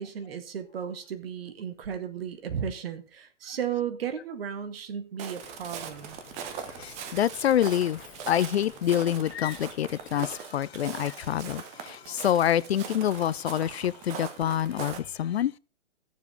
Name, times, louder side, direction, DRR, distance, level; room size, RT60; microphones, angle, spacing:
voice 1, 0.0-6.2, right 8 dB, 55° right, 1.7 m, -34 dB
Walk footsteps, 5.2-15.0, right 7 dB, 20° right, 0.9 m, -41 dB
sound 1, 5.4-10.4, left 6 dB, 25° left, 1.6 m, -51 dB
voice 2, 6.8-15.5, left 10 dB, 60° left, 0.4 m, -27 dB
15.5 x 7.3 x 3.4 m
figure-of-eight pair, 130°, 36 cm